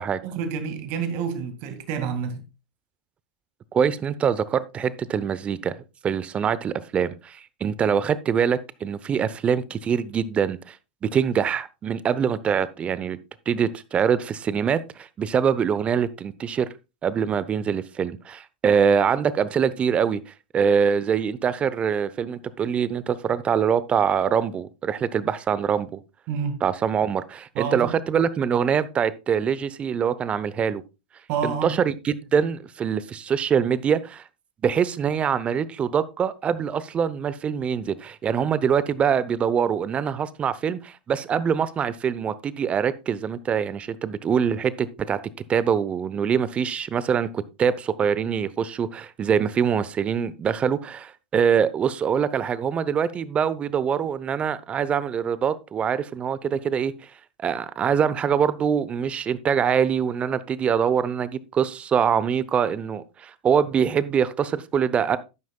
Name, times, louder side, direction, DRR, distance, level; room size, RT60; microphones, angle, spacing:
voice 1, 0.2-2.4 26.3-26.6 27.6-28.0 31.3-31.8, right 6 dB, 50° right, 2.0 m, -28 dB
voice 2, 3.7-5.8 6.0-10.8 11.0-13.2 13.5-16.7 17.0-26.0 26.6-30.8 31.4-34.2 34.6-45.2 45.5-56.9 57.4-65.2, right 7 dB, 25° right, 0.7 m, -24 dB
12.0 x 9.3 x 2.3 m
hypercardioid pair, 100°, 5 cm